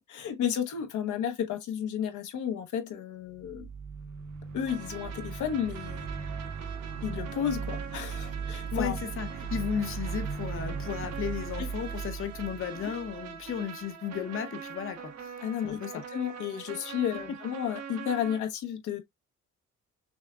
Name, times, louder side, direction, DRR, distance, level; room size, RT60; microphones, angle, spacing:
voice 1, 0.1-3.6 4.5-6.1 7.0-8.9 11.6-11.7 15.4-19.0, left 9 dB, 80° left, 1.0 m, -32 dB
sound 1, 3.3-13.5, right 6 dB, 75° right, 0.8 m, -38 dB
sound 2, 4.7-18.4, right 7 dB, 60° right, 1.1 m, -44 dB
voice 2, 8.7-15.3 15.6-16.0, left 8 dB, 45° left, 0.8 m, -34 dB
6.2 x 2.2 x 2.3 m
cardioid pair, 90°, 30 cm